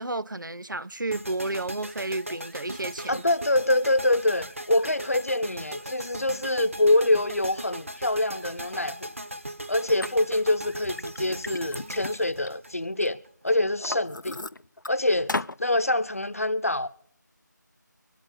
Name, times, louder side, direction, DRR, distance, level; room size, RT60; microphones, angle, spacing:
voice 1, 0.0-3.2, right 2 dB, 85° right, 0.8 m, -32 dB
sound 1, 1.1-13.3, right 1 dB, 45° right, 1.1 m, -39 dB
voice 2, 3.1-9.1 9.7-13.2 13.4-14.4 14.9-15.3 15.6-16.9, left 1 dB, 50° left, 0.9 m, -25 dB
Liquid, 10.0-10.1 10.7-13.1 13.5-14.9 15.3-15.6, left 2 dB, 85° left, 0.6 m, -35 dB
24.0 x 8.3 x 3.9 m
figure-of-eight pair, 180°, 10 cm